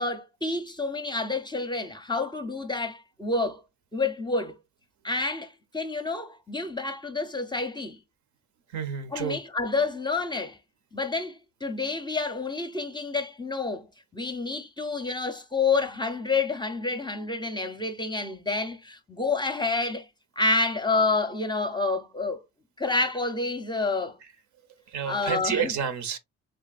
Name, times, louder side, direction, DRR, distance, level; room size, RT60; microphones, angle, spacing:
voice 1, 0.0-3.6 3.9-4.6 5.0-8.0 9.1-10.6 10.9-20.1 20.4-22.4 22.8-24.2 25.0-25.8, left 3 dB, 15° left, 0.6 m, -29 dB
voice 2, 8.7-9.4 24.9-26.2, right 7 dB, 70° right, 0.7 m, -29 dB
3.6 x 3.3 x 2.3 m
cardioid pair, 90°, 30 cm